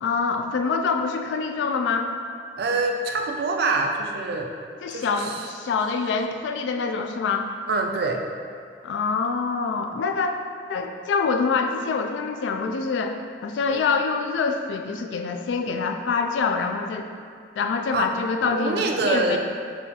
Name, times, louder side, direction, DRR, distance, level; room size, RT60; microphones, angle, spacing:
voice 1, 0.0-2.1 4.8-7.5 8.8-10.4 10.7-13.1 13.4-17.1 17.6-19.4, left 4 dB, 80° left, 5 dB, 0.3 m, -25 dB
voice 2, 2.6-4.5 4.9-5.5 7.7-8.2 13.7-13.9 17.9-18.1 18.4-19.4, right 3 dB, 60° right, 3 dB, 0.4 m, -25 dB
4.0 x 2.4 x 4.1 m, 2.3 s
head